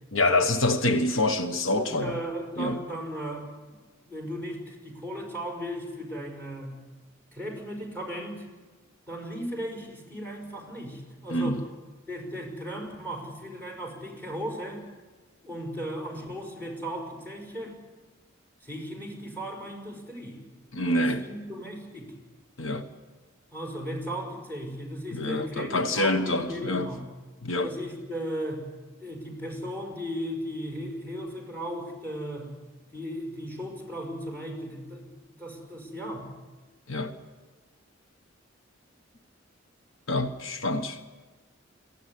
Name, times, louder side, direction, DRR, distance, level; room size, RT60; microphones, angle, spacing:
voice 1, 0.1-2.2 2.6-2.8 11.3-11.6 20.7-21.3 22.6-22.9 25.1-26.9 27.4-27.7 36.9-37.1 40.1-41.0, left 2 dB, 80° left, 1.3 m, -26 dB
voice 2, 1.8-3.8 4.0-6.8 7.3-8.5 9.1-11.6 12.1-14.9 15.4-17.8 18.6-20.4 20.9-22.1 23.5-27.0 27.6-28.7 29.0-32.5 32.9-35.1 35.4-36.3, equal, 10° left, 5.4 m, -36 dB
22.5 x 16.5 x 9.6 m
head